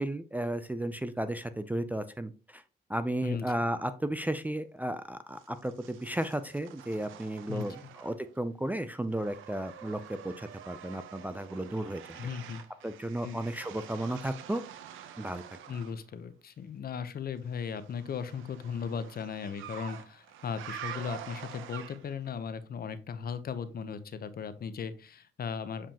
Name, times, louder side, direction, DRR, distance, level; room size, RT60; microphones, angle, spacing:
voice 1, 0.0-2.6 2.9-12.2 12.8-14.6 15.2-15.4, right 1 dB, 10° right, 10 dB, 0.4 m, -34 dB
sound 1, 5.4-8.4 8.7-16.0 17.5-22.3, right 9 dB, 85° right, 0.7 m, -47 dB
voice 2, 7.5-7.9 12.2-12.6 13.2-13.4 15.7-25.9, left 6 dB, 50° left, 12 dB, 0.8 m, -37 dB
7.4 x 5.0 x 2.8 m, 0.35 s
cardioid pair, 90°, 20 cm